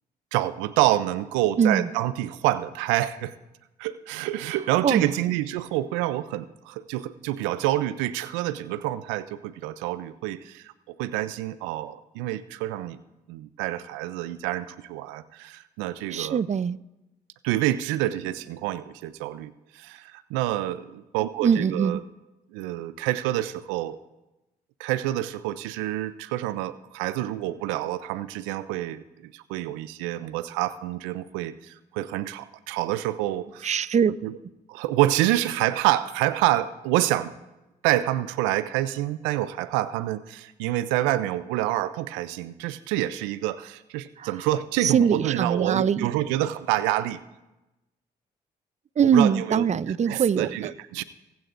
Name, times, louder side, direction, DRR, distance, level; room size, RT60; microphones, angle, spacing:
voice 1, 0.3-3.3 3.8-13.0 13.3-16.4 17.4-22.0 22.5-24.0 24.8-33.8 34.2-34.4 34.7-37.3 37.8-47.2 49.1-49.7 50.1-51.0, right 14 dB, 90° right, 0.4 m, -27 dB
voice 2, 1.6-1.9 4.8-5.1 16.1-16.8 21.4-22.0 33.6-34.1 44.2-44.3 44.8-46.1 49.0-50.7, right 7 dB, 40° right, 0.5 m, -22 dB
23.5 x 8.2 x 2.5 m
hypercardioid pair, 45°, 19 cm